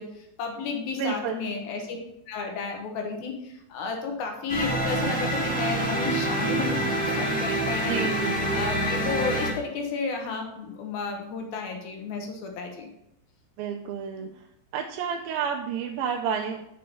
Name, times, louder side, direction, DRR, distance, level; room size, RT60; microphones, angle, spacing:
voice 1, 0.0-2.0 2.3-6.8 7.1-12.9, left 4 dB, 70° left, 3 dB, 2.8 m, -32 dB
voice 2, 1.0-1.5 7.9-8.5 13.6-14.3 14.7-16.7, right 7 dB, 80° right, 2 dB, 2.2 m, -30 dB
sound 1, 4.5-9.5, right 1 dB, 5° left, 1.7 m, -26 dB
6.5 x 5.6 x 6.7 m, 0.82 s
omnidirectional pair, 4.7 m